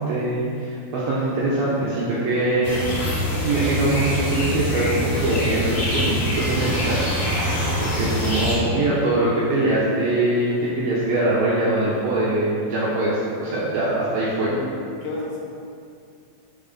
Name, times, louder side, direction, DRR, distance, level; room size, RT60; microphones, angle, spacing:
voice 1, 0.0-2.8 3.4-7.5 7.8-14.5, right 2 dB, 75° right, -8 dB, 2.2 m, -23 dB
sound 1, 2.6-8.6, equal, 45° left, 2.3 m, -24 dB
voice 2, 14.5-15.4, left 3 dB, 75° left, -4 dB, 3.2 m, -32 dB
8.9 x 7.0 x 4.1 m, 2.4 s
omnidirectional pair, 5.5 m